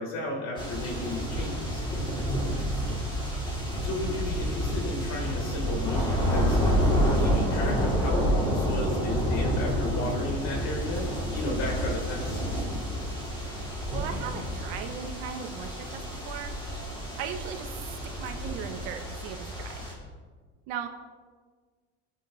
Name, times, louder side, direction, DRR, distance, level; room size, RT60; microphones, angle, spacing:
voice 1, 0.0-1.8 3.8-11.1 11.3-12.4, left 1 dB, 60° left, -1 dB, 5.5 m, -34 dB
sound 1, 0.6-19.9, equal, 15° left, 4.6 m, -29 dB
voice 2, 2.6-3.1 13.9-16.5 17.2-19.9 20.7-20.9, right 8 dB, 85° right, 5 dB, 1.9 m, -38 dB
27.0 x 9.7 x 3.8 m, 1.5 s
cardioid pair, 135°, 32 cm